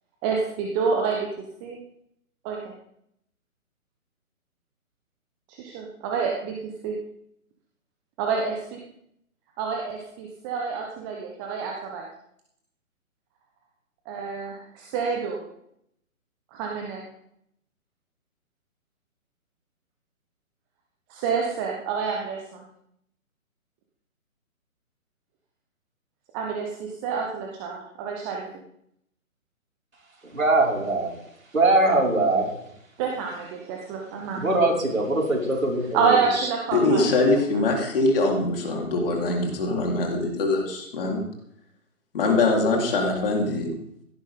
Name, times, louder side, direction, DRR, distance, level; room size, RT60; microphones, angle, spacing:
voice 1, 0.2-1.3 1.6-1.8 2.4-2.7 5.5-7.0 8.2-8.5 9.6-12.0 14.1-15.4 16.5-17.0 21.1-22.6 26.3-28.5 33.0-34.6 35.9-37.1, right 5 dB, 15° right, 0 dB, 1.1 m, -28 dB
voice 2, 30.3-31.1 31.5-32.5 34.3-36.5, right 2 dB, 70° right, -3 dB, 5.7 m, -22 dB
voice 3, 36.7-41.2 42.1-43.7, left 2 dB, 40° left, 0 dB, 4.0 m, -23 dB
17.0 x 13.5 x 3.8 m, 0.73 s
figure-of-eight pair, 135°, 42 cm